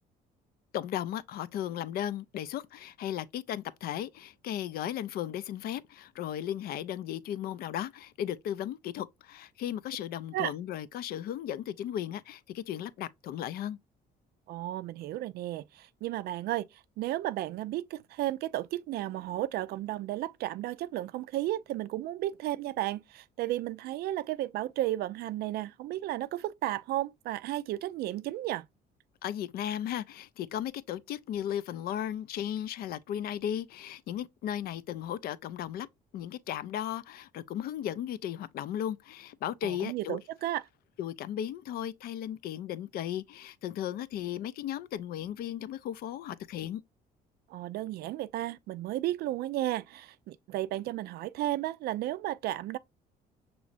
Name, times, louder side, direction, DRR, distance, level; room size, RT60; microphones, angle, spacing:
voice 1, 0.7-13.8 29.2-35.9 36.1-40.2 41.0-46.8, left 10 dB, 65° left, 0.4 m, -36 dB
voice 2, 14.5-28.7 39.6-40.6 47.5-52.8, right 14 dB, 70° right, 0.4 m, -33 dB
6.0 x 3.1 x 2.4 m
cardioid pair, 110°, 17 cm